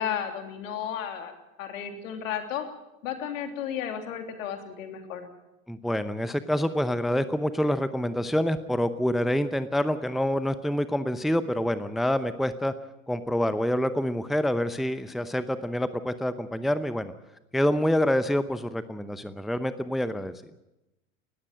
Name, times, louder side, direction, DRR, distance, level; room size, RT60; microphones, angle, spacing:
voice 1, 0.0-1.3 1.6-2.7 3.0-5.3, left 9 dB, 70° left, 5 dB, 3.3 m, -33 dB
voice 2, 5.7-12.7 13.1-17.1 17.5-20.3, equal, ahead, 13 dB, 0.8 m, -27 dB
20.0 x 14.5 x 9.1 m, 0.97 s
hypercardioid pair, 85°, 42 cm